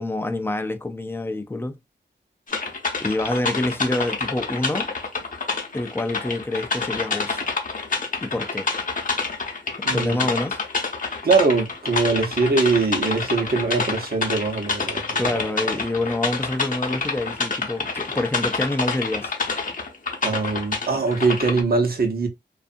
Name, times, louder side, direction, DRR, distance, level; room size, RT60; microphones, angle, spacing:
voice 1, 0.0-1.8 3.0-4.9 5.7-7.4 8.2-8.7 9.9-10.6 15.2-19.3, left 2 dB, 10° left, 0.4 m, -27 dB
sound 1, 2.5-21.6, left 4 dB, 45° left, 0.7 m, -27 dB
voice 2, 9.8-10.3 11.2-15.4 20.2-22.3, right 4 dB, 50° right, 0.8 m, -22 dB
2.6 x 2.4 x 2.5 m
wide cardioid pair, 115°, 20 cm